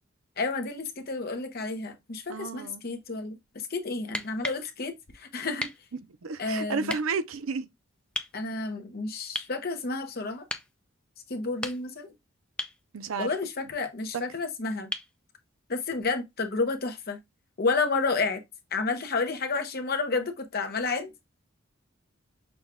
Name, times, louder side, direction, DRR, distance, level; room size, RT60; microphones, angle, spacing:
voice 1, 0.4-3.4 3.7-5.7 6.4-6.9 8.3-10.5 11.3-12.1 13.2-14.9 15.7-17.2 17.6-18.4 18.7-21.1, left 3 dB, 50° left, 0.8 m, -30 dB
voice 2, 2.3-2.8 5.9-7.7 12.9-13.3 14.1-14.2, right 4 dB, 85° right, 0.6 m, -32 dB
sound 1, 4.0-4.7 5.6-5.8 6.9-7.0 8.2-8.4 9.4-9.6 10.5-10.7 11.4-12.1 12.6-12.8 14.9-15.2 17.0-17.1, left 1 dB, 5° left, 0.4 m, -35 dB
6.1 x 2.3 x 3.5 m
head